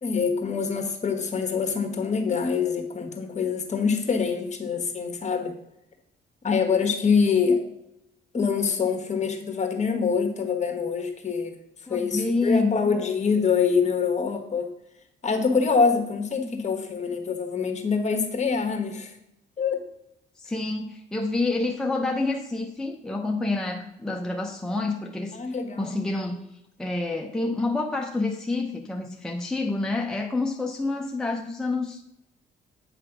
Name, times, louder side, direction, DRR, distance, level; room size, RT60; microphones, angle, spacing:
voice 1, 0.0-5.6 6.4-7.6 8.3-11.6 11.9-14.7 15.2-19.2 19.6-19.8 25.3-26.0, left 5 dB, 35° left, 5 dB, 1.4 m, -25 dB
voice 2, 11.9-12.7 20.4-25.4 25.8-26.4 26.8-32.0, left 3 dB, 5° left, 2 dB, 0.6 m, -28 dB
8.7 x 3.3 x 5.9 m, 0.83 s
cardioid pair, 90°, 20 cm